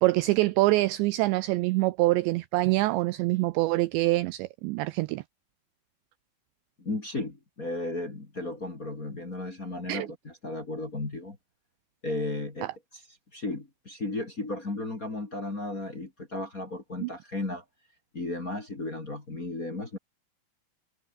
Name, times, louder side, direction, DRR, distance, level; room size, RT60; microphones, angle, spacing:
voice 1, 0.0-5.2 9.9-10.1 17.0-17.1, right 20 dB, 90° right, 2.5 m, -25 dB
voice 2, 6.8-11.4 12.0-13.0 13.3-17.6 18.1-20.0, left 2 dB, 25° left, 2.3 m, -34 dB
omnidirectional pair, 5.8 m